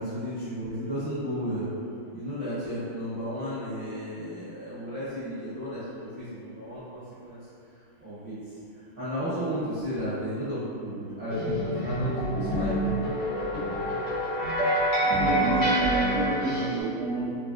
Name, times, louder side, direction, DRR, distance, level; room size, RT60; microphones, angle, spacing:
voice 1, 0.0-1.7 2.1-7.4 8.0-8.4 9.0-13.1 17.1-17.2, equal, 60° right, -16 dB, 0.3 m, -33 dB
sound 1, 11.3-16.8, right 1 dB, 60° left, 1.2 m, -26 dB
voice 2, 14.8-17.4, right 2 dB, 80° right, -4 dB, 1.5 m, -30 dB
3.8 x 2.2 x 2.4 m, 2.4 s
omnidirectional pair, 2.4 m